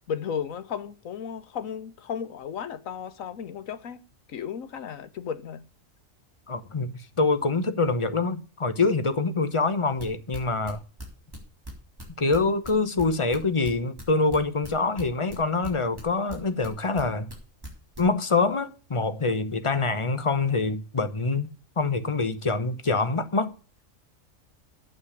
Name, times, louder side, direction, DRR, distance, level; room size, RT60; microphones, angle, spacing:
voice 1, 0.1-4.0 4.3-5.6, left 7 dB, 85° left, 1.4 m, -34 dB
voice 2, 6.5-10.8 12.2-17.3 18.0-21.5 21.8-23.5, left 3 dB, 30° left, 0.8 m, -25 dB
sound 1, 10.0-15.7 16.0-17.4 17.6-18.0, right 1 dB, 15° right, 3.8 m, -39 dB
8.7 x 6.8 x 8.3 m
omnidirectional pair, 1.4 m